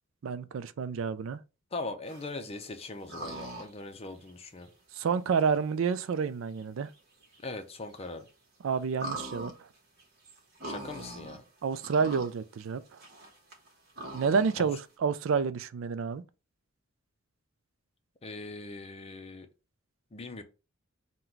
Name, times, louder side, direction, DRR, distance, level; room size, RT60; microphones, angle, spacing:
voice 1, 0.2-1.4 5.0-6.9 8.6-9.5 11.6-12.8 14.1-16.2, right 5 dB, 70° right, 0.4 m, -29 dB
voice 2, 1.7-4.7 7.4-8.3 10.6-11.4 14.6-14.7 18.2-19.5 20.1-20.4, left 2 dB, 30° left, 0.5 m, -40 dB
sound 1, 2.1-2.5 3.1-3.8 4.3-4.4 5.3-5.4 6.6-6.7 6.9-7.0 7.2-7.4 7.9-8.3 8.9-11.4 11.7-12.3 12.6-14.5, right 1 dB, 50° right, 1.1 m, -41 dB
3.9 x 2.2 x 4.4 m
head